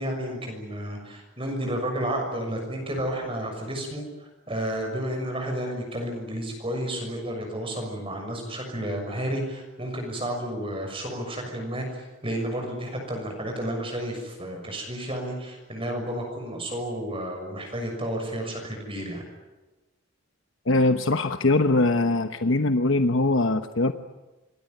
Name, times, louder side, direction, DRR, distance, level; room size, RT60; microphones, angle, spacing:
voice 1, 0.0-19.2, right 1 dB, 25° right, 2 dB, 6.6 m, -31 dB
voice 2, 20.7-23.9, left 2 dB, 70° left, 8 dB, 1.1 m, -22 dB
27.0 x 21.5 x 9.4 m, 1.1 s
head